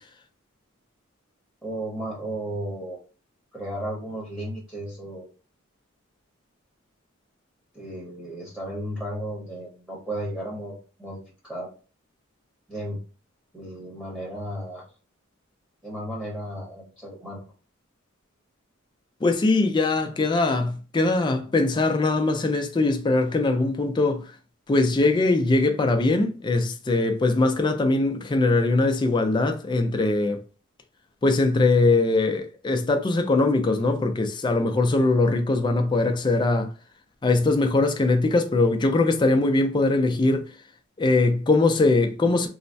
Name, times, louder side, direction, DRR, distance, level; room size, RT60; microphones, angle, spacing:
voice 1, 1.6-3.0 3.5-5.3 7.7-11.7 12.7-13.0 13.5-14.8 15.8-17.4, right 1 dB, 5° right, 0.8 m, -34 dB
voice 2, 19.2-24.4 24.7-30.4 31.2-36.7 37.2-40.6 41.0-42.5, left 2 dB, 20° left, 0.3 m, -21 dB
3.1 x 2.1 x 2.6 m
head